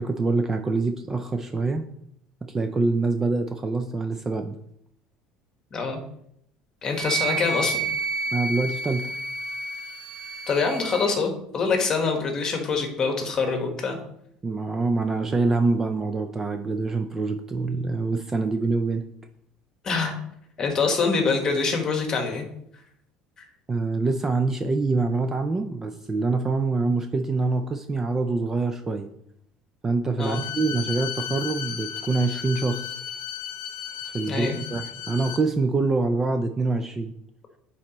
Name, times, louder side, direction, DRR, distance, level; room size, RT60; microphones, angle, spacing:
voice 1, 0.0-1.9 2.5-4.6 8.3-9.1 14.4-19.0 23.7-29.1 29.8-33.0 34.0-37.1, right 3 dB, 15° right, 7 dB, 0.3 m, -25 dB
voice 2, 6.8-7.8 10.5-14.0 19.8-20.1 20.6-22.4 30.2-30.4 34.3-34.5, left 4 dB, 25° left, 3 dB, 1.3 m, -25 dB
Wind instrument woodwind instrument, 6.9-11.1, right 3 dB, 35° right, 2.4 m, -30 dB
Bowed string instrument, 30.2-35.4, left 10 dB, 75° left, 0.7 m, -35 dB
9.6 x 4.1 x 3.0 m, 0.73 s
cardioid pair, 150°, 2 cm